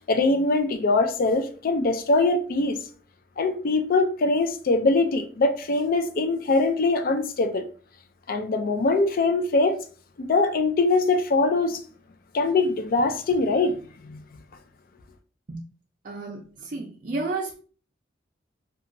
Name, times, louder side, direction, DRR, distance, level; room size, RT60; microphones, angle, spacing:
voice 1, 0.1-2.8 3.4-7.6 8.3-9.8 10.2-11.8 12.3-13.8 14.0-14.2, left 3 dB, 50° left, 0.4 m, -22 dB
voice 2, 16.0-17.5, right 3 dB, 50° right, 0.5 m, -32 dB
2.8 x 2.3 x 2.5 m
head